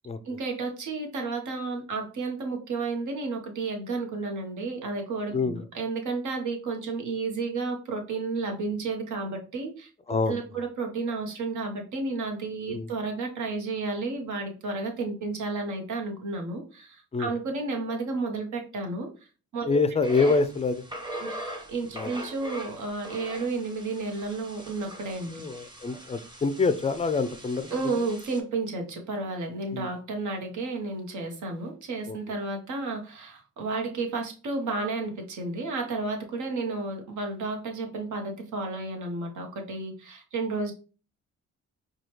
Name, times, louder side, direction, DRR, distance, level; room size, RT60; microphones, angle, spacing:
voice 1, 0.2-19.1 19.5-19.8 21.2-21.3 21.7-25.4 27.7-40.7, right 3 dB, 70° right, 3 dB, 1.1 m, -32 dB
voice 2, 5.3-5.7 10.1-10.4 12.7-12.9 17.1-17.3 19.7-20.8 21.9-22.1 25.3-27.8 29.7-29.9 32.1-32.2, left 4 dB, 20° left, 11 dB, 0.4 m, -26 dB
sound 1, 20.0-28.4, right 1 dB, 15° right, 0.9 m, -41 dB
4.8 x 2.3 x 3.1 m, 0.36 s
cardioid pair, 95°, 31 cm